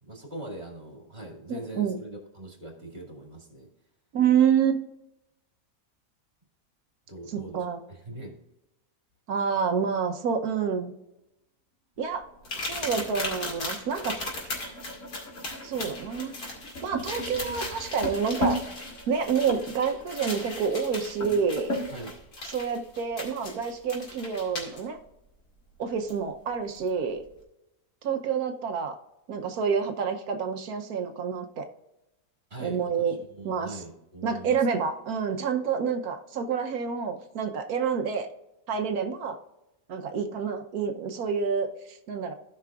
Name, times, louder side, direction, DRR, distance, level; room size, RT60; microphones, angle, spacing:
voice 1, 0.0-3.7 7.1-8.4 21.9-22.2 32.5-34.7, right 1 dB, 40° right, 0 dB, 2.5 m, -42 dB
voice 2, 1.5-2.0 4.1-4.9 7.3-7.8 9.3-10.9 12.0-12.2 12.5-14.3 15.6-16.3 16.8-18.6 19.1-21.7 22.5-25.0 25.8-27.2 28.0-29.0 29.3-31.7 32.6-33.2 33.4-33.8 34.2-38.3 38.7-39.4 39.9-42.3, right 6 dB, 80° right, 6 dB, 1.3 m, -28 dB
sound 1, 12.1-21.9, equal, 55° left, 2.3 m, -37 dB
sound 2, 12.4-24.8 26.1-26.2 26.7-26.9, left 2 dB, 90° left, 2.7 m, -38 dB
16.0 x 5.7 x 2.4 m, 0.92 s
omnidirectional pair, 1.6 m